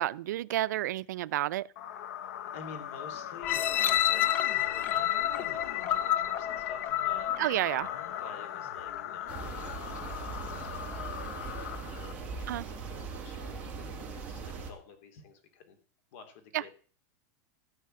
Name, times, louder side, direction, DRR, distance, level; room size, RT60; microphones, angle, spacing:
voice 1, 0.0-1.7 7.4-7.9 12.5-12.7 16.5-16.7, right 14 dB, 85° right, 0.5 m, -30 dB
sound 1, 1.8-12.5, left 10 dB, 70° left, 1.1 m, -40 dB
voice 2, 2.2-7.5 8.2-15.8 16.1-16.7, left 5 dB, 50° left, 2.7 m, -50 dB
sound 2, 3.4-8.4 8.9-9.0, left 11 dB, 20° left, 0.5 m, -29 dB
sound 3, 9.3-14.7, right 5 dB, 15° right, 2.1 m, -40 dB
15.0 x 5.7 x 7.7 m
supercardioid pair, 175°, 9 cm